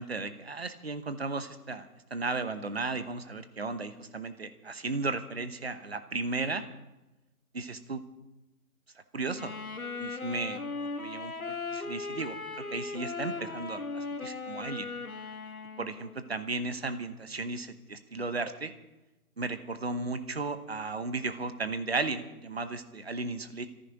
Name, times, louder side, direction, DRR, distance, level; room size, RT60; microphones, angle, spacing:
voice 1, 0.0-6.7 7.5-8.0 9.1-9.5 10.0-14.9 15.8-18.7 19.4-23.7, right 3 dB, 45° right, 11 dB, 1.0 m, -35 dB
Wind instrument woodwind instrument, 9.3-16.3, left 4 dB, 70° left, 2.1 m, -38 dB
21.5 x 14.0 x 3.9 m, 1.1 s
figure-of-eight pair, 165°, 45 cm